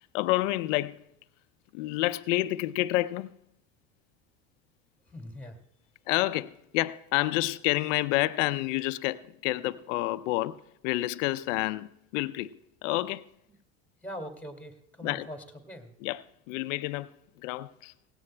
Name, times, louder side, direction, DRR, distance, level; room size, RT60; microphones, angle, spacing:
voice 1, 0.1-1.0 1.7-3.3 6.1-12.5 12.8-13.2 15.0-15.3 16.0-16.2 16.5-17.1 17.4-17.9, left 18 dB, 75° left, 0.6 m, -29 dB
voice 2, 5.1-5.6 14.0-15.9, equal, 5° left, 2.2 m, -42 dB
17.5 x 16.5 x 2.2 m
hypercardioid pair, 85°, 37 cm